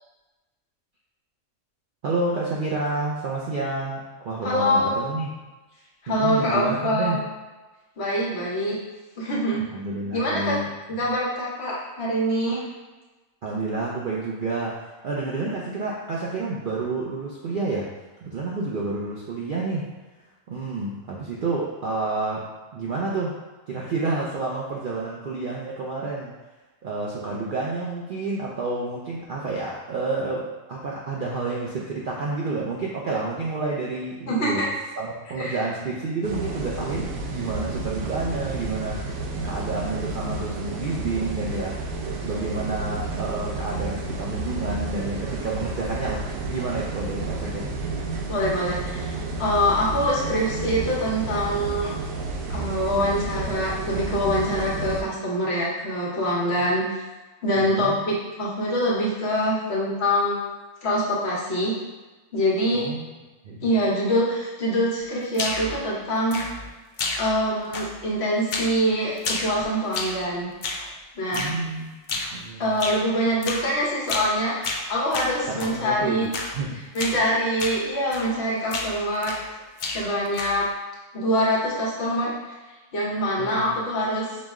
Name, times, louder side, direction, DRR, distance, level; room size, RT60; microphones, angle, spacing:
voice 1, 2.0-5.4 6.1-7.2 9.5-11.0 13.4-17.9 18.2-19.8 20.5-22.5 22.7-23.4 23.7-26.3 26.8-34.7 35.0-39.0 39.4-41.8 42.2-47.7 57.6-58.0 62.7-63.1 63.4-63.7 71.3-72.8 75.5-76.3 76.5-76.8 83.4-83.7, right 3 dB, 60° right, -4 dB, 0.5 m, -29 dB
voice 2, 4.4-4.9 6.0-7.2 8.0-8.8 9.2-9.6 10.1-10.5 10.9-12.6 34.3-34.7 35.4-35.6 48.3-51.9 52.5-56.9 57.4-60.5 60.8-61.7 62.3-62.8 63.6-66.4 67.2-70.5 71.2-71.5 72.6-76.3 76.9-79.4 79.9-80.6 81.1-82.3 82.9-84.3, equal, 55° left, -5 dB, 1.2 m, -24 dB
sound 1, 36.2-55.0, right 3 dB, 90° right, 1.1 m, -31 dB
sound 2, 65.3-65.8 66.3-66.7 67.0-67.5 67.7-68.1 68.5-68.8 69.2-70.2 70.6-70.9 71.3-71.6 72.1-72.4 72.8-73.0 73.4-73.7 74.1-74.4 74.6-75.8 76.3-76.6 77.0-77.2 77.6-77.8 78.1-78.4 78.7-79.5 79.8-80.7, left 3 dB, 75° left, 0.4 m, -31 dB
5.0 x 2.1 x 3.5 m, 1.2 s
omnidirectional pair, 1.4 m